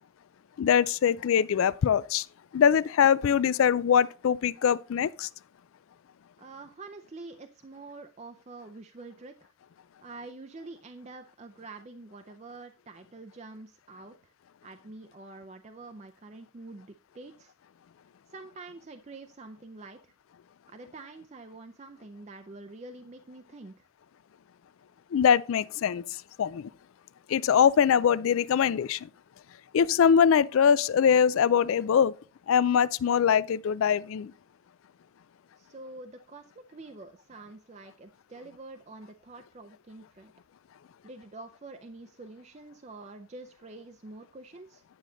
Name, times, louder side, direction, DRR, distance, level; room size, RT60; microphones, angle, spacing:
voice 1, 0.6-2.2 2.5-5.3 25.1-26.0 26.4-26.7 27.3-29.0 29.7-32.1 32.5-34.3, left 7 dB, 75° left, 0.3 m, -23 dB
voice 2, 6.4-9.5 10.0-14.3 14.6-17.5 18.3-20.1 20.7-23.9 35.6-40.3 41.0-44.8, right 3 dB, 30° right, 0.4 m, -46 dB
9.3 x 6.4 x 3.8 m
head